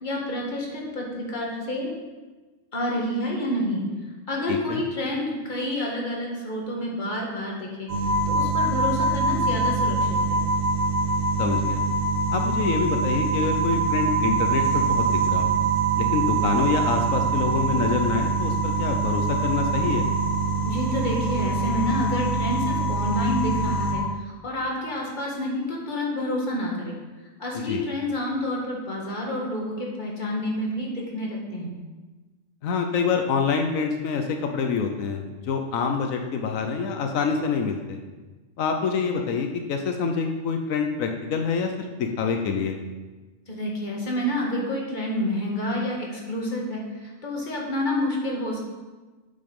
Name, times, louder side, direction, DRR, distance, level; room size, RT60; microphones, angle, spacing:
voice 1, 0.0-1.9 2.7-3.8 4.3-7.9 8.3-10.4 20.7-27.0 27.4-31.8 43.5-48.6, left 1 dB, 35° left, -2 dB, 1.8 m, -29 dB
voice 2, 4.5-4.8 11.4-11.8 12.3-15.5 16.0-20.1 27.7-27.8 32.6-38.0 38.6-42.7, left 5 dB, 85° left, 4 dB, 1.2 m, -26 dB
sound 1, 7.9-23.9, right 3 dB, 75° right, 1.8 m, -24 dB
8.6 x 5.8 x 5.3 m, 1.2 s
omnidirectional pair, 1.4 m